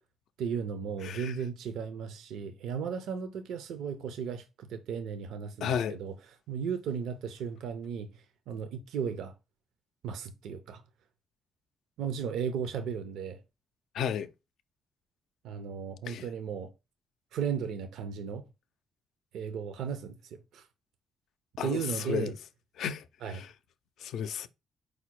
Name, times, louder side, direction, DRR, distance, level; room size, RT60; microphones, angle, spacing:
voice 1, 0.4-6.1 6.5-8.1 8.5-9.3 10.0-10.8 12.0-13.4 15.4-16.7 17.3-18.4 19.3-20.6 21.6-22.3 23.2-23.4, right 7 dB, 80° right, 0.5 m, -35 dB
voice 2, 1.0-1.3 5.6-6.0 13.9-14.3 16.1-16.3 21.6-22.4 22.8-23.5 24.0-24.5, left 8 dB, 75° left, 0.4 m, -33 dB
4.9 x 2.1 x 4.4 m
cardioid pair, 90°, 0 cm